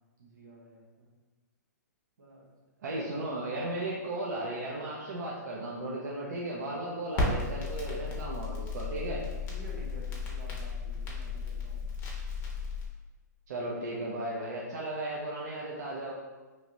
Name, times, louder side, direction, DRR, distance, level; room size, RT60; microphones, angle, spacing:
voice 1, 0.2-1.1 2.2-2.5 2.8-3.0 8.4-8.6 9.5-11.8, right 1 dB, 90° right, -2 dB, 0.9 m, -51 dB
voice 2, 2.8-9.2 13.5-16.1, right 1 dB, 65° right, -4 dB, 0.6 m, -35 dB
Crackle, 7.1-12.9, left 3 dB, 20° left, 0.6 m, -34 dB
3.0 x 2.6 x 2.9 m, 1.2 s
hypercardioid pair, 150°, 10 cm